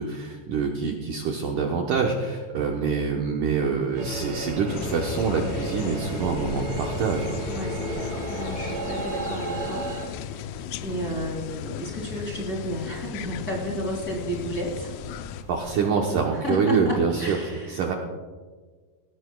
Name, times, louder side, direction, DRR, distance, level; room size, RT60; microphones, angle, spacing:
voice 1, 0.0-7.4 15.5-17.4 17.7-17.9, right 5 dB, 70° right, 1 dB, 2.0 m, -26 dB
sound 1, 4.0-10.1, right 2 dB, 35° right, 2.9 m, -33 dB
sound 2, 4.7-15.4, left 11 dB, 90° left, 2.9 m, -37 dB
sound 3, 5.1-15.7, equal, 45° left, 2.8 m, -43 dB
voice 2, 7.4-9.9 10.2-14.9 16.3-17.8, equal, 25° left, -2 dB, 2.5 m, -32 dB
19.0 x 18.0 x 2.3 m, 1.4 s
omnidirectional pair, 4.9 m